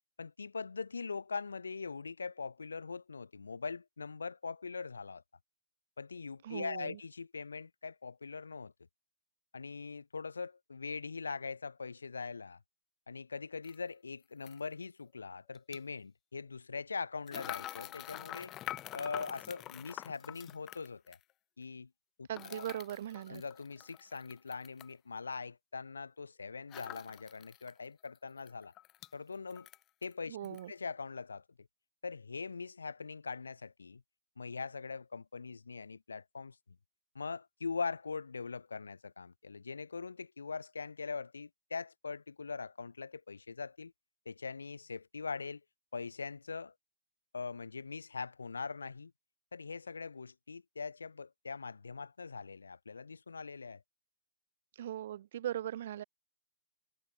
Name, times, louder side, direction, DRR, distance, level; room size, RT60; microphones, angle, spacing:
voice 1, 0.2-5.2 6.0-8.7 9.5-12.6 13.1-18.6 18.9-21.2 21.6-21.9 22.2-22.6 23.3-28.7 29.1-29.7 30.0-31.7 32.0-34.0 34.4-36.6 37.1-43.9 44.3-45.6 45.9-46.7 47.3-49.1 49.5-53.8, left 4 dB, 80° left, 0.5 m, -42 dB
voice 2, 6.4-7.0 22.3-23.4 30.3-30.7 54.8-56.0, right 11 dB, 60° right, 1.0 m, -39 dB
sound 1, 13.6-13.7 14.4-14.6 15.5-15.8 17.3-21.2 22.3-24.9 26.7-27.7 28.1-28.2 28.5-29.1 29.5-30.1 30.4-30.6, left 14 dB, 30° left, 0.5 m, -46 dB
figure-of-eight pair, 115°, 0 cm